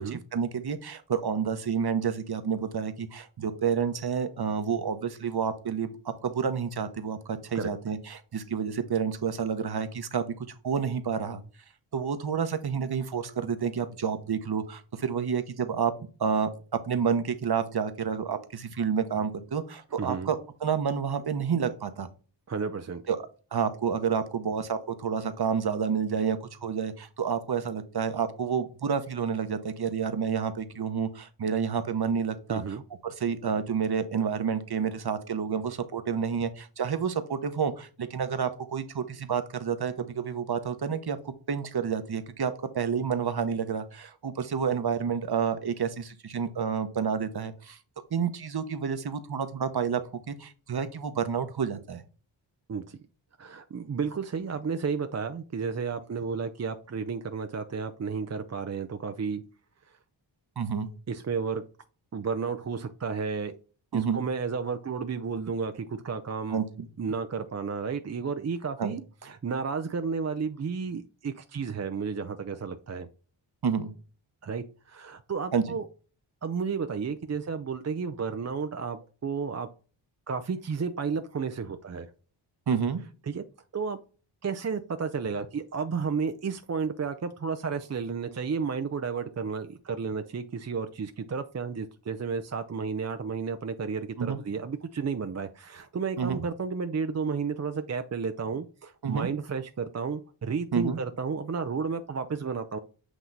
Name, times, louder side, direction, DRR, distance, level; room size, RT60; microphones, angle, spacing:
voice 1, 0.0-11.4 11.9-15.9 16.2-16.5 16.8-22.1 23.1-23.2 23.5-32.8 33.0-47.8 48.1-50.0 50.3-52.0 60.6-60.9 63.9-64.2 66.5-66.9 68.8-68.9 73.6-73.9 75.5-75.6 82.7-83.0 94.2-94.4 96.2-96.4 99.0-99.3 100.7-101.0, right 6 dB, 50° right, 10 dB, 1.0 m, -29 dB
voice 2, 20.0-20.3 22.5-23.0 32.5-32.8 52.7-53.0 53.4-59.4 61.1-61.6 62.1-63.5 63.9-66.6 67.0-73.1 74.4-75.9 76.4-79.7 80.3-82.1 83.3-83.4 83.7-84.0 84.4-102.8, right 5 dB, 35° right, 8 dB, 0.5 m, -32 dB
8.0 x 3.0 x 3.9 m, 0.37 s
cardioid pair, 50°, 50 cm